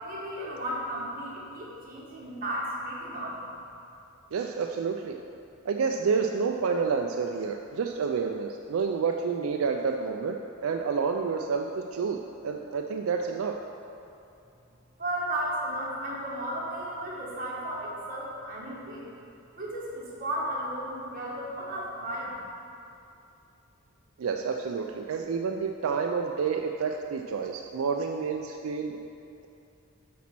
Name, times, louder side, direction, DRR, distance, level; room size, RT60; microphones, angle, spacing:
voice 1, 0.0-3.5 15.0-19.1 19.6-22.3, right 1 dB, 40° right, -5 dB, 1.6 m, -34 dB
voice 2, 4.3-5.2 5.7-12.2 12.4-13.5 24.2-29.0, right 5 dB, 80° right, 3 dB, 0.4 m, -29 dB
8.5 x 4.2 x 5.9 m, 2.7 s
head